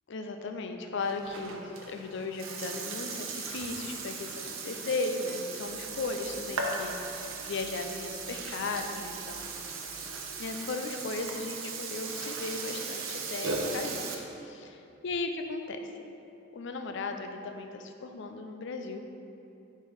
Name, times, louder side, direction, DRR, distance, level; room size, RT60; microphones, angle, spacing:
voice 1, 0.1-9.5 10.4-14.1 14.4-15.9 16.5-19.1, left 3 dB, 60° left, 5 dB, 0.5 m, -36 dB
Burping eructation, 1.0-14.2, right 4 dB, 80° right, 0.7 m, -38 dB
sound 1, 5.6-10.5, right 1 dB, 10° right, 1.0 m, -56 dB
5.1 x 4.4 x 4.8 m, 2.8 s
head